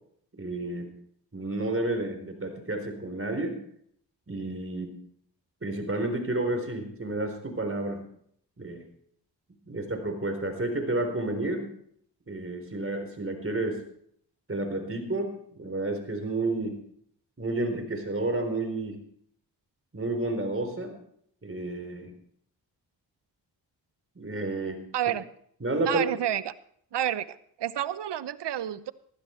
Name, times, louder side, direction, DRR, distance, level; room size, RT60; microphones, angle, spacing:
voice 1, 0.4-0.9 1.3-3.6 4.3-5.0 5.6-8.0 8.6-8.8 9.7-11.7 12.3-13.8 14.5-16.8 17.4-19.0 19.9-21.0 21.4-22.1 24.2-24.8 25.6-26.0, right 2 dB, 30° right, 5 dB, 4.1 m, -31 dB
voice 2, 24.9-25.2 25.8-26.5 26.9-28.9, right 11 dB, 65° right, 17 dB, 0.8 m, -29 dB
15.0 x 12.5 x 4.5 m, 0.66 s
supercardioid pair, 40°, 45 cm